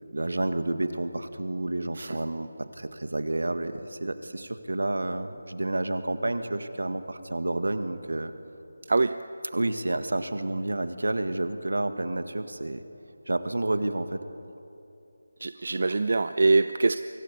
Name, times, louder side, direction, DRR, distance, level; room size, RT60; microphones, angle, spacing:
voice 1, 0.1-8.3 9.5-12.8 13.3-14.2, right 2 dB, 80° right, 9 dB, 1.8 m, -30 dB
voice 2, 15.4-17.0, right 3 dB, 55° right, 12 dB, 0.6 m, -23 dB
24.0 x 17.5 x 8.4 m, 2.8 s
figure-of-eight pair, 165°, 0 cm